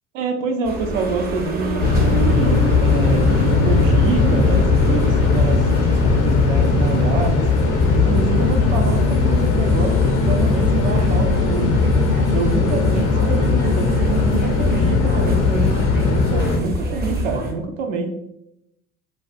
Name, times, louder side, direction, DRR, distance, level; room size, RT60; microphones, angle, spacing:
voice 1, 0.1-7.4 7.9-11.8 12.3-18.1, right 4 dB, 70° right, 4 dB, 0.6 m, -26 dB
sound 1, 0.6-17.5, right 2 dB, 25° right, 0.5 m, -29 dB
sound 2, 1.8-16.6, left 4 dB, 35° left, 0.4 m, -18 dB
sound 3, 8.3-14.8, right 2 dB, 90° right, 1.2 m, -30 dB
2.3 x 2.2 x 2.5 m, 0.80 s
hypercardioid pair, 65°, 41 cm